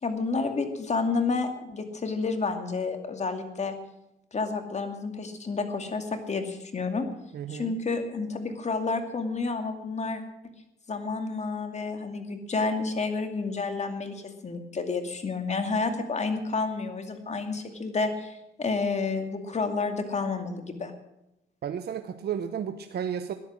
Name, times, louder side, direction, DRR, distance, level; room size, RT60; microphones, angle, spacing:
voice 1, 0.0-3.8 4.3-7.1 7.5-10.2 10.9-20.9, left 4 dB, 35° left, 6 dB, 2.4 m, -30 dB
voice 2, 7.3-7.8 21.6-23.3, right 8 dB, 55° right, 9 dB, 0.9 m, -33 dB
13.5 x 10.5 x 7.5 m, 0.85 s
cardioid pair, 90°, 20 cm